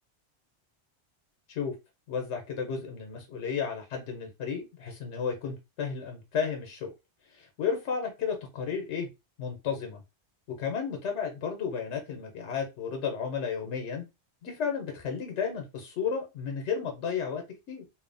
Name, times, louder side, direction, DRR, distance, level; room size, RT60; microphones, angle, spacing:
voice 1, 2.1-6.9 7.3-9.1 9.4-10.0 10.6-14.0 14.4-17.4 17.7-17.8, left 6 dB, 85° left, 3 dB, 1.0 m, -33 dB
2.8 x 2.0 x 2.5 m, 0.24 s
omnidirectional pair, 1.2 m